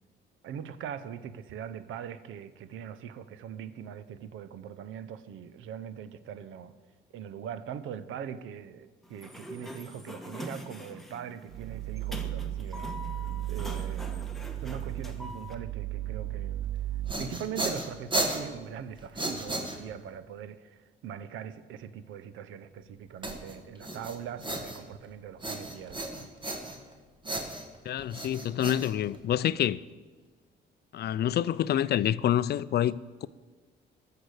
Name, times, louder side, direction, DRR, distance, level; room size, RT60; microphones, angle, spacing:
voice 1, 0.4-6.7 7.1-13.0 13.5-14.3 14.6-16.7 17.2-26.3, right 8 dB, 85° right, 0.7 m, -41 dB
Sliding door, 9.0-15.5, left 1 dB, ahead, 1.2 m, -43 dB
sound 1, 11.5-17.1, right 13 dB, 45° right, 0.5 m, -35 dB
sound 2, 16.8-20.2 23.2-25.1 25.4-26.9 27.2-29.5, right 1 dB, 25° right, 1.6 m, -35 dB
voice 2, 27.9-29.8 30.9-33.3, left 11 dB, 55° left, 0.4 m, -27 dB
13.5 x 6.7 x 6.4 m
cardioid pair, 90°, 20 cm